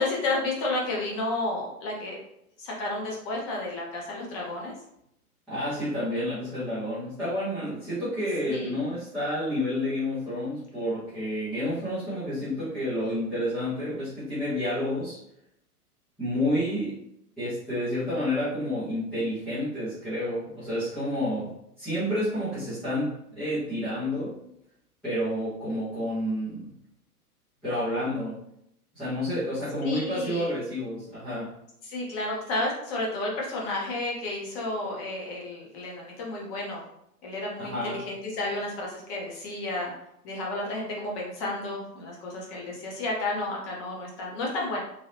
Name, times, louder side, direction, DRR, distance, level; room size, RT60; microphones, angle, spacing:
voice 1, 0.0-2.2 2.6-4.7 8.4-8.8 29.8-30.5 31.8-36.8 37.2-39.9 40.2-44.8, left 2 dB, 25° left, -2 dB, 0.7 m, -31 dB
voice 2, 5.5-15.2 16.2-17.0 17.4-21.5 21.8-24.4 25.0-26.7 27.6-28.4 28.9-31.5 37.6-38.0, left 1 dB, ahead, -17 dB, 0.4 m, -29 dB
3.2 x 2.7 x 2.6 m, 0.78 s
figure-of-eight pair, 105°, 46 cm